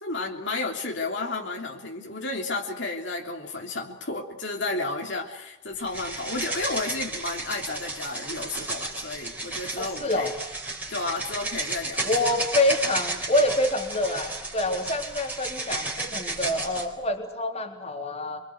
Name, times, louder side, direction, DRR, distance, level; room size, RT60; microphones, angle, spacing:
voice 1, 0.0-10.3 10.9-12.1, left 3 dB, 60° left, 1 dB, 3.3 m, -32 dB
sound 1, 5.9-16.9, right 2 dB, 10° right, 4.1 m, -33 dB
voice 2, 9.8-10.3 12.0-18.4, left 1 dB, 30° left, 3 dB, 3.7 m, -26 dB
26.0 x 24.5 x 8.1 m, 0.90 s
head